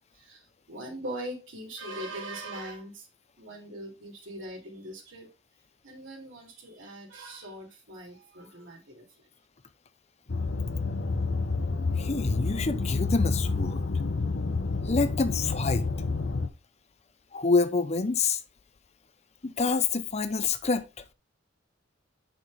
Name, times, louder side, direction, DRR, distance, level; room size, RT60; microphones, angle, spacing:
voice 1, 0.1-3.1 3.4-5.3 5.8-9.0, right 1 dB, 80° right, 3.2 m, -41 dB
sound 1, 10.3-16.5, left 3 dB, 65° left, 0.8 m, -29 dB
voice 2, 12.0-13.8 14.9-15.9 17.3-18.4 19.4-20.8, left 4 dB, 35° left, 0.6 m, -27 dB
7.5 x 6.1 x 3.5 m
head